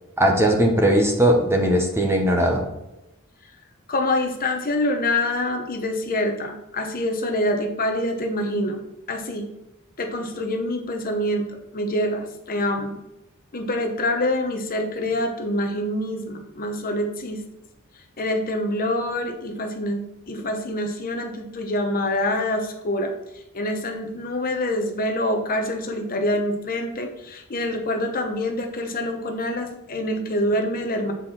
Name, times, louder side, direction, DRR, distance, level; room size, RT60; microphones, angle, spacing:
voice 1, 0.2-2.7, right 1 dB, 10° right, 1 dB, 1.1 m, -19 dB
voice 2, 3.9-8.8 9.1-9.5 10.0-11.4 11.7-13.0 13.5-17.4 18.2-31.1, left 1 dB, 40° left, 4 dB, 0.9 m, -26 dB
8.0 x 4.8 x 4.3 m, 0.89 s
head